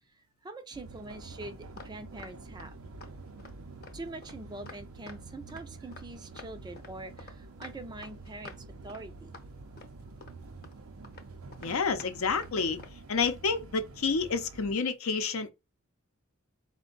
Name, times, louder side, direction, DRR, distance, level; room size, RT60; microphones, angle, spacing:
voice 1, 0.4-2.8 3.9-8.6 8.8-9.3, right 2 dB, 20° right, 0.4 m, -44 dB
sound 1, 0.7-14.8, right 3 dB, 75° right, 0.6 m, -48 dB
sound 2, 1.4-1.9 2.2-2.7 3.0-3.1 3.4-3.5 3.8-5.2 5.5-6.1 6.3-7.4 7.6-8.6 8.9-9.0 9.3-9.4 9.8-10.4 10.6-10.7 11.0-11.3 11.5-12.1 12.4-12.5 12.8-12.9 13.2-13.4, left 4 dB, 45° left, 0.8 m, -49 dB
voice 2, 11.6-12.8 13.1-15.5, left 5 dB, 75° left, 0.6 m, -29 dB
4.4 x 2.2 x 3.8 m
head